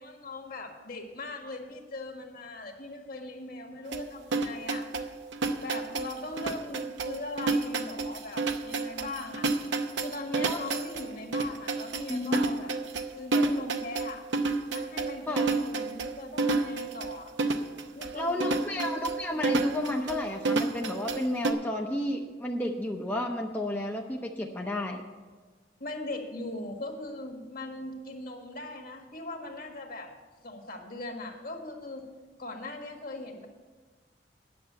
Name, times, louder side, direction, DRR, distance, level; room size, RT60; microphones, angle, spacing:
voice 1, 0.0-4.9 5.6-9.5 10.0-14.2 14.7-17.3 17.9-18.9 25.8-30.1 30.4-32.1 32.4-33.5, left 2 dB, 50° left, 3 dB, 1.5 m, -40 dB
sound 1, 3.9-21.5, right 3 dB, 80° right, 0.8 m, -30 dB
voice 2, 12.1-12.5 15.3-15.5 18.1-25.0, left 1 dB, 10° left, 0 dB, 0.6 m, -32 dB
9.6 x 7.0 x 7.9 m, 1.4 s
head